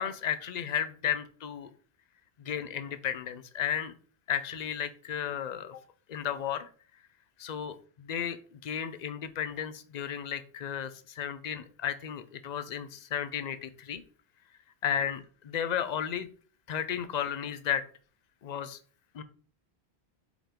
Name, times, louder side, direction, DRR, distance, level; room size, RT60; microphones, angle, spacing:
voice 1, 0.0-1.7 2.4-3.9 4.3-5.8 6.1-6.7 7.4-14.0 14.8-16.3 16.7-17.8 18.4-18.8 19.1-19.2, left 9 dB, 50° left, 12 dB, 0.6 m, -33 dB
5.0 x 5.0 x 3.7 m, 0.42 s
omnidirectional pair, 1.1 m